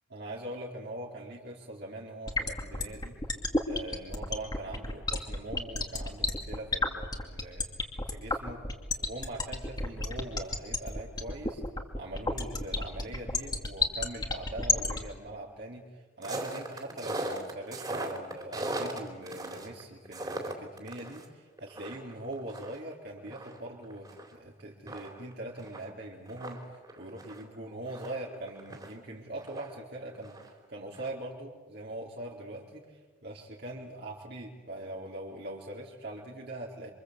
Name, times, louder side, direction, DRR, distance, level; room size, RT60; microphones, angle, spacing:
voice 1, 0.1-3.2 3.6-8.6 9.0-11.6 12.0-36.9, right 1 dB, 55° right, -3 dB, 4.1 m, -42 dB
sound 1, 2.3-15.0, left 3 dB, 20° left, 2.5 m, -29 dB
sound 2, 16.2-21.3 21.6-24.3 24.6-24.7 24.9-28.9 29.4-30.7 30.9-31.1, right 1 dB, 20° right, 3.7 m, -39 dB
27.5 x 26.5 x 8.2 m, 1.4 s
head